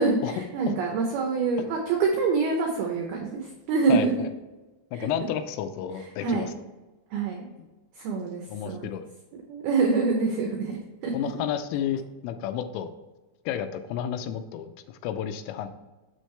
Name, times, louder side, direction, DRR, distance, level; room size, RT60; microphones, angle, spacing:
voice 1, 0.0-3.4 3.7-4.3 5.0-5.1 6.2-6.5 7.1-7.5 8.0-8.9 9.5-10.7 11.0-11.1, right 4 dB, 85° right, 1 dB, 2.2 m, -25 dB
voice 2, 3.9-4.3 4.9-6.5 8.5-9.1 11.1-12.9 13.5-15.7, left 9 dB, 85° left, 9 dB, 3.2 m, -31 dB
7.6 x 6.3 x 3.3 m, 1.1 s
omnidirectional pair, 5.7 m